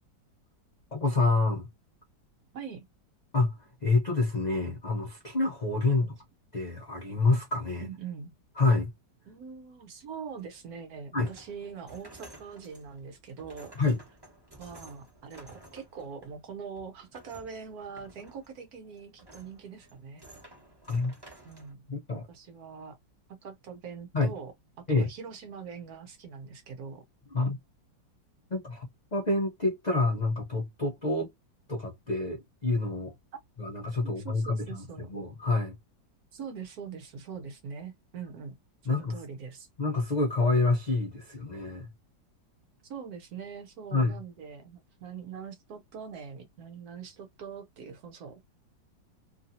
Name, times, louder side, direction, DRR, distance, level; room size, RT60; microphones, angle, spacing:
voice 1, 0.9-1.7 3.3-6.2 6.5-7.9 8.6-8.9 11.1-11.3 13.8-14.0 20.9-21.1 21.9-22.3 24.1-24.3 24.9-25.1 27.3-27.6 28.5-28.9 29.1-31.3 31.7-33.1 33.6-35.8 38.8-39.2 39.8-41.9 43.9-44.2, left 3 dB, 65° left, 0.4 m, -27 dB
voice 2, 2.5-2.8 6.0-6.1 7.8-8.3 9.3-13.7 14.6-20.2 21.4-21.8 22.1-23.0 23.3-24.5 24.8-27.0 34.0-35.1 36.3-38.5 38.8-39.7 42.9-48.4, right 6 dB, 60° right, 1.1 m, -43 dB
sound 1, 10.4-21.7, right 1 dB, 15° right, 0.9 m, -54 dB
3.2 x 2.7 x 2.6 m
omnidirectional pair, 2.0 m